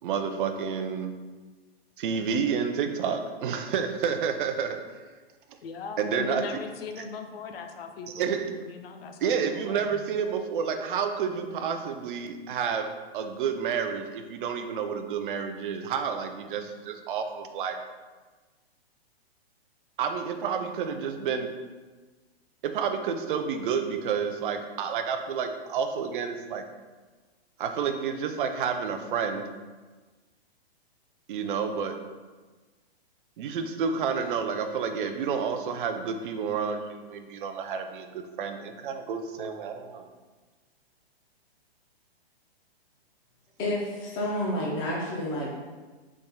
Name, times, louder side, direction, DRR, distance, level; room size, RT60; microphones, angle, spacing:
voice 1, 0.0-1.1 2.0-5.0 5.5-5.6 6.0-6.4 8.1-8.4 9.2-12.9 13.1-17.8 20.0-21.5 22.6-26.6 27.6-29.5 31.3-32.0 33.4-40.1, right 6 dB, 55° right, 6 dB, 0.5 m, -30 dB
voice 2, 5.6-10.1, left 5 dB, 70° left, 5 dB, 0.6 m, -39 dB
voice 3, 43.6-45.6, left 1 dB, 15° left, -5 dB, 0.5 m, -30 dB
4.1 x 3.5 x 2.2 m, 1.3 s
hypercardioid pair, 150°, 31 cm